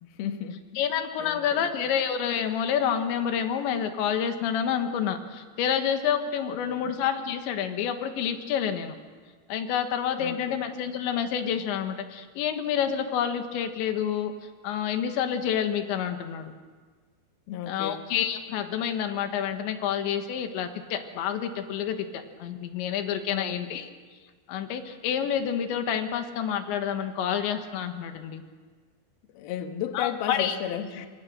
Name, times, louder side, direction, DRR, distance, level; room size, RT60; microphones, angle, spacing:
voice 1, 0.0-0.9 1.2-1.7 6.7-6.9 10.2-10.6 17.5-18.1 23.3-23.8 29.3-31.1, left 9 dB, 65° left, 6 dB, 2.9 m, -34 dB
voice 2, 0.8-9.0 9.5-14.3 14.6-16.5 17.7-23.9 24.5-28.4 30.0-30.6, left 8 dB, 85° left, 7 dB, 3.7 m, -28 dB
26.0 x 25.0 x 6.7 m, 1.5 s
omnidirectional pair, 5.1 m